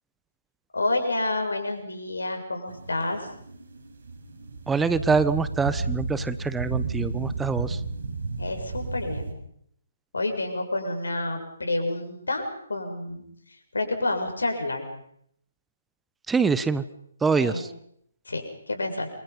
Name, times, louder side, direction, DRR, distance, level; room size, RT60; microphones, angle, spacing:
voice 1, 0.7-3.3 8.4-9.4 10.1-13.2 13.5-14.9 17.4-17.6 18.3-19.1, left 2 dB, 80° left, 4 dB, 7.4 m, -29 dB
sound 1, 2.7-9.3, right 4 dB, 65° right, 5.8 m, -33 dB
voice 2, 4.7-7.8 16.3-16.8 17.2-17.7, right 5 dB, 10° right, 14 dB, 1.1 m, -24 dB
29.0 x 25.0 x 5.5 m, 0.70 s
figure-of-eight pair, 140°, 0 cm